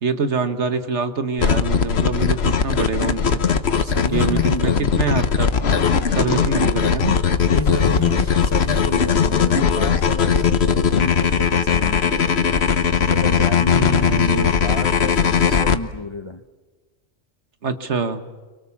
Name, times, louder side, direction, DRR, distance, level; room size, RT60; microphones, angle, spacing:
voice 1, 0.0-3.4 4.1-5.5 6.1-7.2 13.7-14.5 17.6-18.2, right 4 dB, 75° right, 8 dB, 1.7 m, -25 dB
sound 1, 1.4-15.8, left 6 dB, 65° left, 1.3 m, -19 dB
voice 2, 3.8-5.1 6.2-6.3 7.5-12.3 13.0-16.4, left 2 dB, 25° left, 8 dB, 0.8 m, -30 dB
29.5 x 23.5 x 7.2 m, 1.3 s
omnidirectional pair, 1.2 m